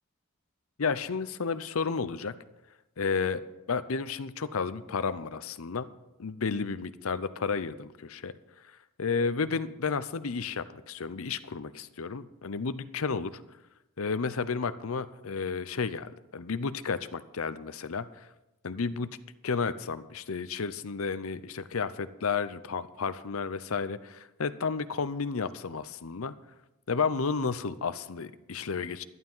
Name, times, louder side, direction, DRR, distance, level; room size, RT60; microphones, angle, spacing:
voice 1, 0.8-2.4 3.0-3.4 3.7-5.9 6.2-8.3 9.0-13.4 14.0-18.3 18.6-19.1 19.4-26.3 26.9-29.0, left 5 dB, 75° left, 14 dB, 0.7 m, -32 dB
12.0 x 11.0 x 5.6 m, 0.96 s
head